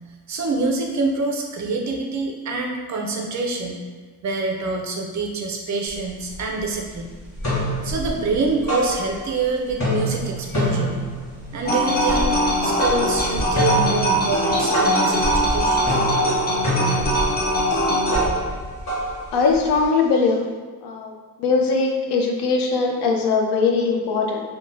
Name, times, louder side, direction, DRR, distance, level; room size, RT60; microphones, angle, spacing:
voice 1, 0.3-3.8 4.2-7.1 7.8-11.0 11.5-12.3 12.6-15.9, right 3 dB, 45° right, 1 dB, 0.4 m, -26 dB
sound 1, 5.9-6.0 6.3-6.9 7.2-9.4 9.7-19.8, equal, 45° left, 1.3 m, -26 dB
sound 2, 11.6-18.3, equal, 25° left, 0.4 m, -21 dB
voice 2, 19.3-20.4 20.8-21.1 21.4-24.4, left 4 dB, 90° left, 2 dB, 0.5 m, -20 dB
3.1 x 2.2 x 2.6 m, 1.4 s
wide cardioid pair, 140°, 40 cm